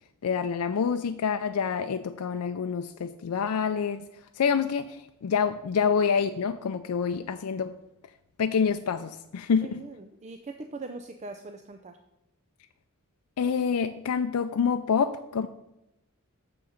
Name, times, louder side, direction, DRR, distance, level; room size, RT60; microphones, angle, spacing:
voice 1, 0.2-4.0 4.4-7.7 8.4-9.8 13.4-15.5, left 6 dB, 80° left, 7 dB, 0.4 m, -27 dB
voice 2, 9.6-12.0, right 3 dB, 30° right, 6 dB, 0.5 m, -41 dB
7.0 x 6.4 x 5.7 m, 0.91 s
head